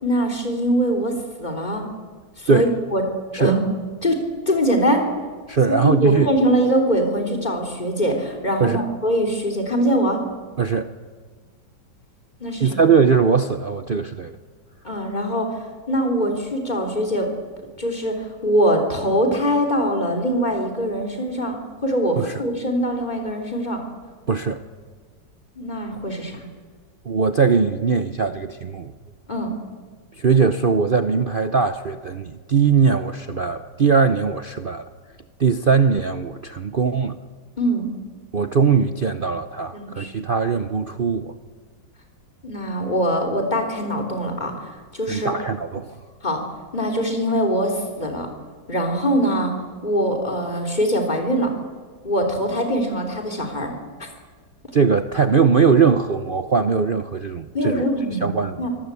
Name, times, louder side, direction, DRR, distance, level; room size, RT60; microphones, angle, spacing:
voice 1, 0.0-1.8 2.4-3.0 3.4-3.6 4.0-5.1 5.7-10.2 12.4-12.8 14.8-15.6 15.9-17.3 17.8-23.8 25.6-26.4 29.3-29.5 37.6-37.9 39.7-40.1 42.4-45.3 46.2-46.4 46.7-48.3 48.7-49.5 49.8-51.5 52.0-53.7 54.0-54.1 57.5-58.7, equal, 20° left, 3 dB, 3.7 m, -22 dB
voice 2, 5.5-6.3 8.6-8.8 10.6-10.9 12.6-14.3 22.2-22.3 24.3-24.6 27.1-28.9 30.2-34.9 35.4-37.2 38.3-41.4 45.1-46.0 54.7-57.9 58.2-58.7, right 5 dB, 65° right, 10 dB, 0.5 m, -20 dB
25.0 x 18.5 x 8.4 m, 1.5 s
omnidirectional pair, 2.0 m